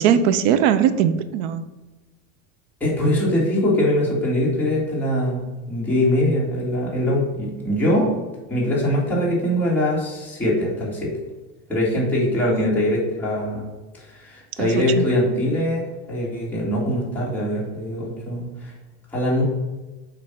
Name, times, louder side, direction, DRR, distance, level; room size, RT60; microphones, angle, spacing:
voice 1, 0.0-1.6 12.4-12.7 14.6-15.0, right 9 dB, 55° right, 12 dB, 0.5 m, -20 dB
voice 2, 2.8-5.4 5.7-8.1 8.5-11.1 11.7-13.7 14.0-18.7 19.1-19.4, left 1 dB, 5° left, -7 dB, 1.8 m, -22 dB
7.5 x 2.6 x 5.8 m, 1.1 s
supercardioid pair, 160°, 38 cm